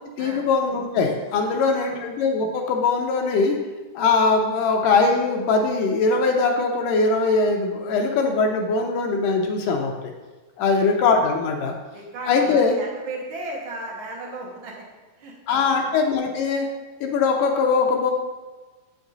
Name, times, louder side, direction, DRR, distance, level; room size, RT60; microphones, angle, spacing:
voice 1, 0.2-3.6 4.0-9.9 10.6-11.8 12.3-12.8 15.5-16.7 17.0-18.1, left 4 dB, 75° left, 2 dB, 2.1 m, -21 dB
voice 2, 1.4-2.0 10.6-10.9 11.9-14.8 15.2-15.9, right 2 dB, 80° right, -2 dB, 1.0 m, -36 dB
8.3 x 6.1 x 3.9 m, 1.3 s
omnidirectional pair, 3.9 m